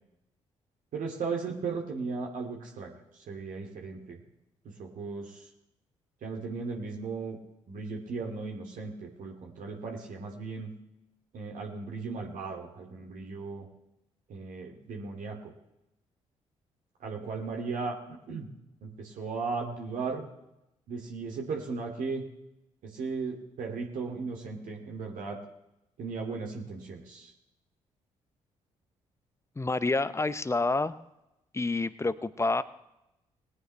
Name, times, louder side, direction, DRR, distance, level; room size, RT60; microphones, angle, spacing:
voice 1, 0.9-2.9 3.3-4.2 4.8-5.4 6.2-7.4 7.7-10.7 11.3-13.7 14.3-15.5 17.0-17.9 18.3-18.5 18.8-20.2 20.9-22.3 22.8-25.4 26.0-27.3, right 4 dB, 60° right, 0 dB, 2.4 m, -36 dB
voice 2, 29.6-31.0 31.5-32.6, left 3 dB, 20° left, 14 dB, 0.9 m, -28 dB
20.5 x 9.5 x 3.3 m, 0.88 s
figure-of-eight pair, 40°, 16 cm